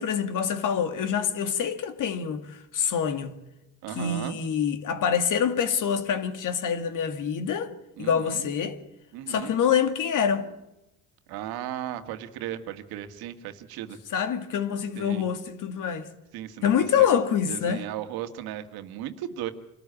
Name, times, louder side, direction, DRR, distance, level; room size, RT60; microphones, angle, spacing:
voice 1, 0.0-3.4 4.0-7.7 8.0-8.8 9.3-10.5 14.1-16.1 16.6-17.9, left 8 dB, 55° left, 2.1 m, -26 dB
voice 2, 3.8-4.4 8.0-8.5 9.1-9.6 11.3-14.0 15.0-15.2 16.3-17.1 17.5-19.5, right 11 dB, 85° right, 1.9 m, -36 dB
25.5 x 14.0 x 8.7 m
cardioid pair, 105°, 36 cm